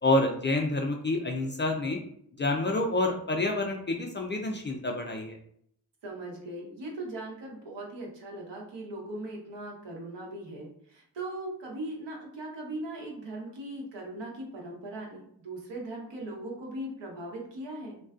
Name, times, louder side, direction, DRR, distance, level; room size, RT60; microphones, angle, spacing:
voice 1, 0.0-2.0 2.4-5.4, left 2 dB, 30° left, 2 dB, 0.3 m, -28 dB
voice 2, 6.0-18.0, right 1 dB, 70° right, -1 dB, 0.9 m, -39 dB
2.3 x 2.3 x 2.3 m, 0.67 s
cardioid pair, 50°, 45 cm